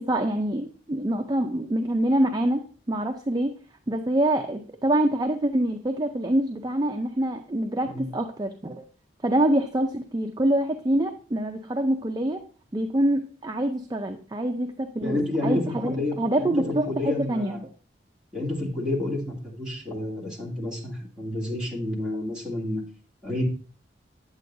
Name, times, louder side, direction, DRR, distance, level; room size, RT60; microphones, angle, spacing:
voice 1, 0.0-2.6 2.9-3.5 3.9-8.8 9.2-12.4 12.7-17.6, right 1 dB, 20° right, 5 dB, 0.4 m, -25 dB
voice 2, 15.0-17.6 18.3-22.8 23.2-23.4, left 1 dB, 5° right, -4 dB, 2.0 m, -30 dB
8.4 x 8.1 x 2.6 m, 0.42 s
head